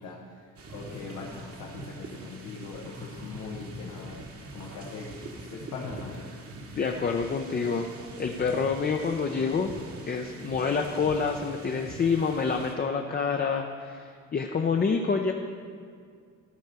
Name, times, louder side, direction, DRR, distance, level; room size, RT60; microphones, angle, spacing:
voice 1, 0.0-4.2 4.5-6.3, left 4 dB, 85° left, -2 dB, 1.2 m, -41 dB
sound 1, 0.6-12.7, right 2 dB, 50° right, 1.3 m, -43 dB
voice 2, 6.8-7.9 8.2-9.8 10.1-15.3, left 5 dB, 30° left, 3 dB, 0.6 m, -27 dB
13.0 x 4.5 x 6.8 m, 2.2 s
cardioid pair, 90°, 30 cm